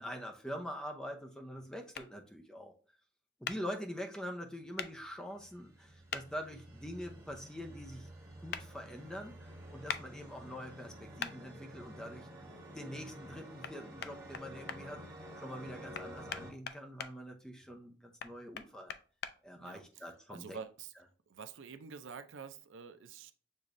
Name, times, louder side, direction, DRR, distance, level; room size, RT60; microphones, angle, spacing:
voice 1, 0.0-2.7 3.4-8.1 8.4-12.3 12.7-15.0 15.4-19.0 19.4-20.6, equal, 5° left, 0.6 m, -44 dB
sound 1, 1.9-2.1 3.4-3.6 4.8-4.9 6.1-6.2 8.5-8.6 9.9-10.0 11.2-11.3 13.6-13.7 14.0-14.8 15.9-17.1 18.2-19.3, left 7 dB, 55° left, 0.4 m, -40 dB
sound 2, 4.9-16.5, equal, 20° right, 2.0 m, -50 dB
voice 2, 19.6-20.9 21.3-23.3, right 6 dB, 85° right, 0.5 m, -48 dB
6.7 x 3.0 x 2.6 m
head